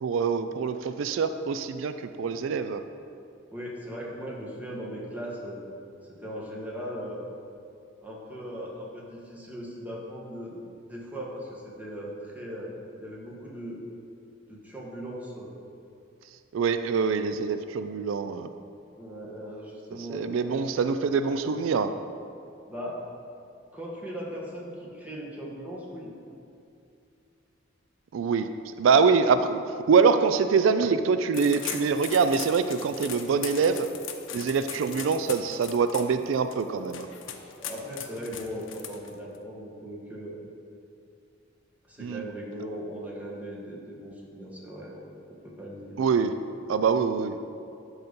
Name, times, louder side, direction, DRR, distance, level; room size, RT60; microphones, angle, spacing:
voice 1, 0.0-2.8 16.5-18.5 20.1-21.9 28.1-33.9 34.3-37.1 42.0-42.2 46.0-46.3 46.7-47.4, right 5 dB, 85° right, 10 dB, 0.4 m, -24 dB
voice 2, 3.5-5.6 6.0-7.2 8.0-10.6 10.9-13.8 14.5-15.5 19.0-20.6 21.4-21.6 22.7-23.0 23.7-26.1 34.9-35.0 37.5-40.3 41.9-45.0 45.3-46.0, equal, 10° right, -5 dB, 1.5 m, -38 dB
sound 1, 31.3-39.4, left 8 dB, 75° left, 0.7 m, -39 dB
12.0 x 4.0 x 5.3 m, 2.6 s
head